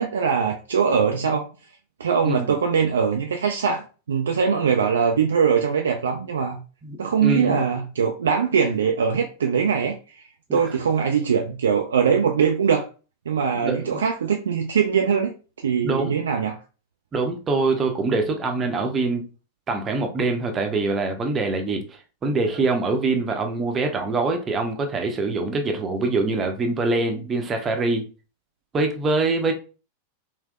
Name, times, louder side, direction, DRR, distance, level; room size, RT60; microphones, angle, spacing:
voice 1, 0.0-1.5 2.0-6.6 7.0-12.9 13.3-16.6, right 6 dB, 65° right, 0.3 m, -22 dB
voice 2, 2.2-2.5 6.8-7.6 10.5-10.6 13.5-14.0 15.8-16.1 17.1-19.2 19.7-28.0 28.7-29.5, right 3 dB, 25° right, 0.7 m, -24 dB
3.5 x 2.7 x 2.3 m
figure-of-eight pair, 90°, 0 cm